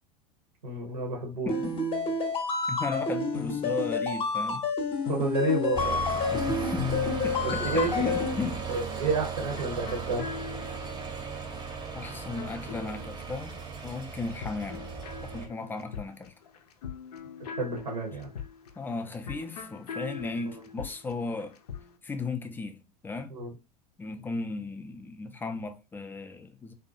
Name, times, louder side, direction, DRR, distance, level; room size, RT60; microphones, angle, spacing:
voice 1, 0.6-1.5 5.1-6.1 7.4-8.1 8.7-10.2 17.5-18.3 23.3-23.5, right 3 dB, 80° right, 0.9 m, -30 dB
sound 1, 1.5-8.3, left 4 dB, 25° left, 0.7 m, -29 dB
voice 2, 1.5-1.8 2.7-4.7 6.3-6.9 7.2-8.7 11.9-14.9 15.2-16.3 18.8-21.6 22.0-23.3 24.0-26.7, left 4 dB, 10° left, 0.3 m, -35 dB
sound 2, 5.0-13.8 14.1-22.0, left 6 dB, 70° left, 0.5 m, -43 dB
sound 3, 5.7-15.5, right 5 dB, 20° right, 0.7 m, -37 dB
2.6 x 2.2 x 2.5 m
figure-of-eight pair, 85°, 21 cm